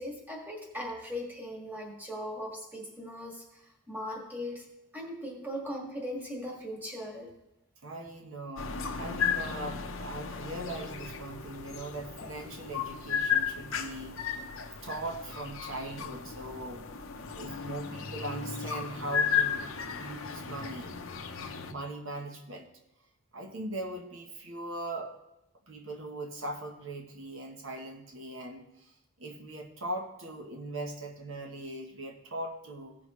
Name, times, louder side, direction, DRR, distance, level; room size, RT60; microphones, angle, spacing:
voice 1, 0.0-4.7 4.9-7.3, equal, 10° right, -1 dB, 1.8 m, -39 dB
voice 2, 7.8-14.2 14.6-16.8 17.4-21.0 21.4-22.7 23.3-25.2 25.7-33.0, right 1 dB, 60° right, 3 dB, 1.0 m, -40 dB
sound 1, 8.6-21.7, left 7 dB, 65° left, 0.7 m, -34 dB
16.0 x 6.3 x 3.1 m, 0.89 s
head